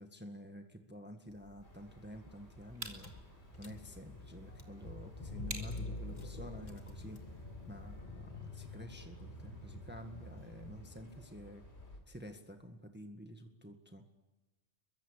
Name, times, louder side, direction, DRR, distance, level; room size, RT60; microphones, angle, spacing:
voice 1, 0.0-3.1 3.6-7.2 7.7-11.6 12.1-14.0, equal, 10° right, 5 dB, 1.7 m, -50 dB
sound 1, 1.3-8.0, right 2 dB, 60° right, 3.8 m, -52 dB
sound 2, 1.6-12.0, left 1 dB, 60° left, 4.5 m, -57 dB
Car / Engine, 2.5-2.6 2.8-11.2, left 2 dB, 35° left, 2.0 m, -47 dB
24.0 x 23.0 x 8.3 m, 1.1 s
omnidirectional pair, 1.3 m